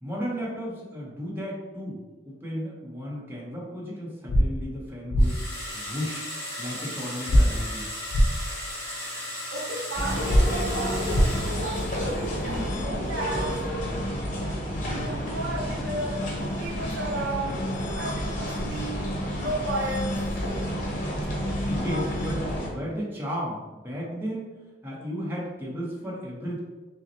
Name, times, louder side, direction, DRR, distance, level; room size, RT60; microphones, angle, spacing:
voice 1, 0.0-5.4 5.7-6.3 6.6-7.9 21.6-24.5 24.8-26.6, equal, 10° right, -5 dB, 0.9 m, -34 dB
sound 1, 4.3-4.4 5.1-5.3 7.3-7.4 8.1-8.3 10.3-10.4 11.1-11.2, equal, 60° left, 0.5 m, -18 dB
sound 2, 5.2-12.5, left 1 dB, 15° left, 1.4 m, -36 dB
voice 2, 9.5-13.5 14.9-20.2, right 1 dB, 75° right, -1 dB, 0.7 m, -33 dB
sound 3, 9.9-22.7, equal, 45° left, 0.9 m, -30 dB
5.5 x 2.1 x 2.8 m, 1.2 s
head